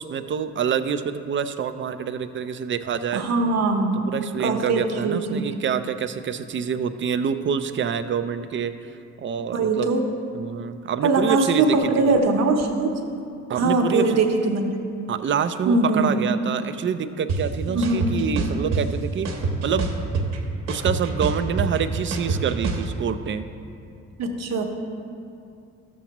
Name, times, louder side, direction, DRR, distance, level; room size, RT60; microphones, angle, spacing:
voice 1, 0.0-3.2 4.1-8.7 9.2-9.9 10.3-12.1 13.5-14.2 15.1-19.3 19.6-19.9 20.7-23.5, right 7 dB, 40° right, 10 dB, 0.5 m, -26 dB
voice 2, 3.1-4.0 4.4-5.5 9.5-10.0 11.0-13.0 13.6-14.7 15.7-16.2 17.7-18.2 24.2-24.6, right 3 dB, 60° right, 3 dB, 1.0 m, -21 dB
sound 1, 17.3-17.4 17.8-18.8 19.2-20.4 20.7-22.8, right 3 dB, 85° right, 1.2 m, -25 dB
13.0 x 7.3 x 3.0 m, 2.6 s
cardioid pair, 90°, 30 cm